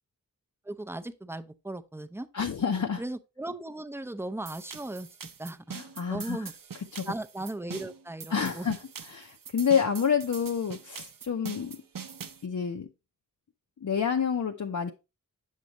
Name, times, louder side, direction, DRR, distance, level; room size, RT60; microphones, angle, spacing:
voice 1, 0.7-2.3 3.0-5.1 5.4-5.8 6.1-6.5 7.1-8.7, right 1 dB, 5° right, 0.5 m, -37 dB
voice 2, 2.3-3.0 5.7-6.4 6.9-7.1 8.3-8.8 9.0-11.8 12.4-12.9 13.8-14.9, left 7 dB, 60° left, 0.7 m, -28 dB
sound 1, 4.5-12.4, right 6 dB, 70° right, 0.7 m, -43 dB
8.2 x 6.5 x 2.9 m
wide cardioid pair, 60°, 34 cm